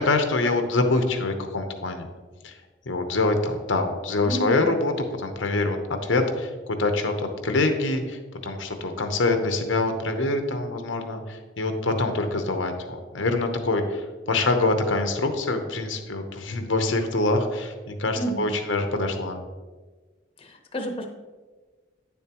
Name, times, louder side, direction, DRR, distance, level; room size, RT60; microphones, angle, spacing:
voice 1, 0.0-2.1 2.4-2.6 2.9-4.9 5.2-19.4, left 2 dB, 85° left, 6 dB, 0.9 m, -25 dB
voice 2, 4.2-4.7 18.2-18.4 20.4-21.1, right 1 dB, 30° left, 4 dB, 0.8 m, -31 dB
9.6 x 7.2 x 3.0 m, 1.3 s
head